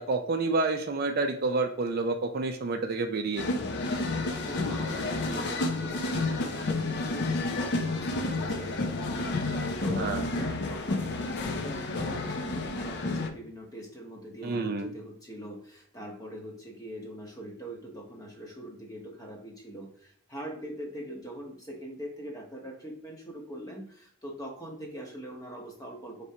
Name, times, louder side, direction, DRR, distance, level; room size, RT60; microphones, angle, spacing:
voice 1, 0.0-3.5 10.0-10.2 14.4-14.9, right 3 dB, 45° right, 5 dB, 0.4 m, -29 dB
sound 1, 3.4-13.3, left 2 dB, 50° left, 0.5 m, -30 dB
voice 2, 4.4-26.2, right 1 dB, 15° left, 0 dB, 0.9 m, -42 dB
4.3 x 3.3 x 2.7 m, 0.62 s
head